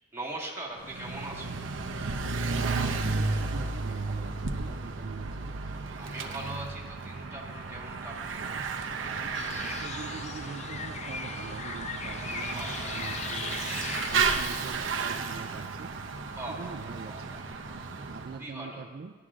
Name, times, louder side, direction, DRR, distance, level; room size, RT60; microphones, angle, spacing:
voice 1, 0.1-1.6 6.0-8.4 12.5-13.1 16.3-18.0 18.3-18.9, right 2 dB, 15° right, -4 dB, 1.7 m, -41 dB
Bicycle / Mechanisms, 0.8-18.4, right 4 dB, 90° right, 0.6 m, -33 dB
voice 2, 2.9-5.5 9.6-13.6 14.0-15.9 16.6-17.4 18.1-19.1, right 5 dB, 55° right, 7 dB, 0.3 m, -44 dB
sound 1, 9.3-14.5, left 6 dB, 35° left, 0.4 m, -38 dB
15.0 x 11.0 x 2.5 m, 1.5 s
head